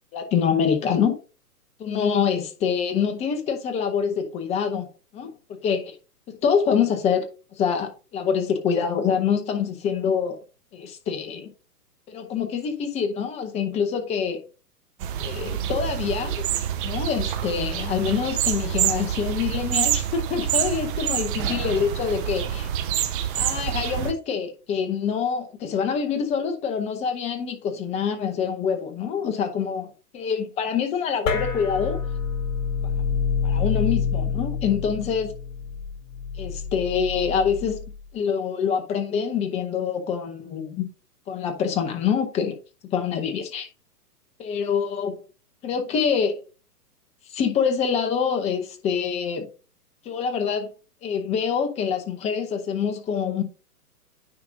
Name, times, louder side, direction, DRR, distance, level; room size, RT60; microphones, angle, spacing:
voice 1, 0.1-1.2 1.8-4.9 5.1-5.3 5.6-5.9 6.3-7.3 7.5-10.4 10.7-11.5 12.1-14.4 15.2-16.4 16.8-22.7 23.3-32.0 33.4-35.3 36.4-37.8 38.1-40.9 41.3-42.6 42.9-43.7 44.4-45.2 45.6-46.4 47.3-49.5 50.0-50.7 51.0-53.4, left 7 dB, 15° left, 0.7 m, -25 dB
sound 1, 15.0-24.1, right 10 dB, 35° right, 0.7 m, -27 dB
sound 2, 31.3-38.0, left 6 dB, 55° left, 2.1 m, -27 dB
9.5 x 5.0 x 2.6 m
hypercardioid pair, 130°, 48 cm